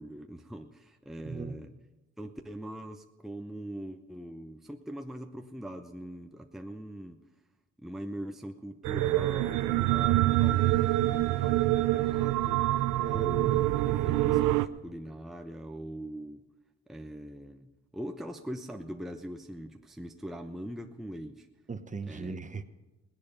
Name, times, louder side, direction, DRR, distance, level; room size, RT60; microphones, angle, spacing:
voice 1, 0.0-1.7 2.2-7.2 7.8-12.6 13.1-16.4 16.9-21.5 22.1-22.4, equal, ahead, 0.7 m, -42 dB
voice 2, 1.3-1.6 13.0-13.6 21.7-22.6, right 4 dB, 25° right, 1.0 m, -39 dB
sound 1, 8.8-14.7, right 16 dB, 90° right, 0.6 m, -26 dB
18.5 x 10.5 x 5.5 m
cardioid pair, 90°, 30 cm